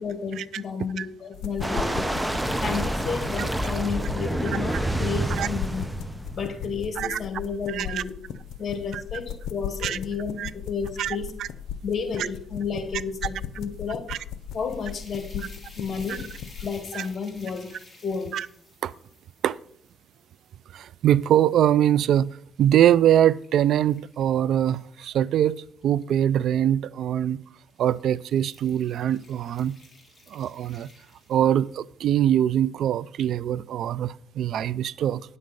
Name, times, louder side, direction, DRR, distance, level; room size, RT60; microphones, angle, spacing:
voice 1, 0.0-2.0 2.6-5.9 6.4-8.2 8.6-11.3 11.8-14.2 14.5-16.3 16.6-17.7 18.0-18.4, left 5 dB, 45° left, 7 dB, 2.0 m, -32 dB
sound 1, 1.3-16.7, left 8 dB, 80° left, 0.7 m, -38 dB
sound 2, 1.6-6.9, right 1 dB, 10° right, 0.6 m, -28 dB
voice 2, 7.7-8.0 8.9-9.0 9.8-10.0 10.4-10.5 11.0-11.5 14.1-14.2 16.1-16.2 16.9-17.1 18.3-18.5 18.8-18.9 19.4-19.6 20.7-22.3 22.6-27.4 27.8-29.7 30.3-30.9 31.3-35.2, right 11 dB, 70° right, 21 dB, 0.4 m, -23 dB
sound 3, 14.4-21.6 22.1-26.1 27.0-27.3 27.7-31.8, left 2 dB, 15° left, 3.0 m, -53 dB
9.7 x 7.7 x 5.2 m, 0.63 s
cardioid pair, 90°, 0 cm